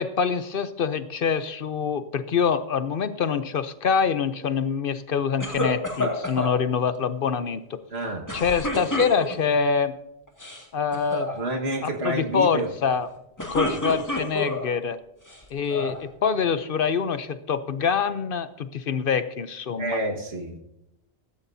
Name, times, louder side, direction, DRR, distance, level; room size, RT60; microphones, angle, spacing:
voice 1, 0.0-7.8 8.3-9.9 10.7-11.3 11.8-13.1 13.5-15.0 15.5-20.0, left 6 dB, 65° left, 12 dB, 0.8 m, -25 dB
sound 1, 5.4-6.5 8.3-9.6 10.3-10.6 10.9-11.3 13.1-14.7 15.3-16.0, left 1 dB, 15° left, 2.1 m, -29 dB
voice 2, 7.9-8.3 11.4-12.7 19.7-20.6, right 1 dB, 90° right, 1 dB, 1.8 m, -29 dB
16.0 x 14.0 x 2.7 m, 0.84 s
omnidirectional pair, 1.0 m